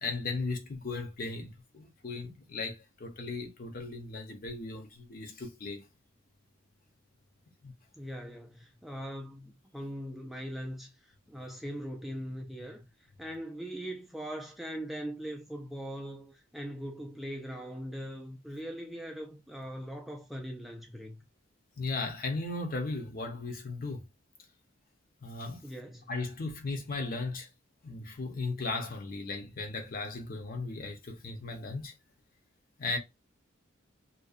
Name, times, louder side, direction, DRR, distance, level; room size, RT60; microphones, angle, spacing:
voice 1, 0.0-5.9 7.6-7.7 21.8-24.0 25.2-25.6 26.1-27.5 27.8-31.9 32.8-33.0, left 3 dB, 45° left, 0.7 m, -36 dB
voice 2, 8.0-12.9 13.2-21.2 25.6-26.1, equal, ahead, 0.3 m, -41 dB
2.5 x 2.2 x 2.4 m
head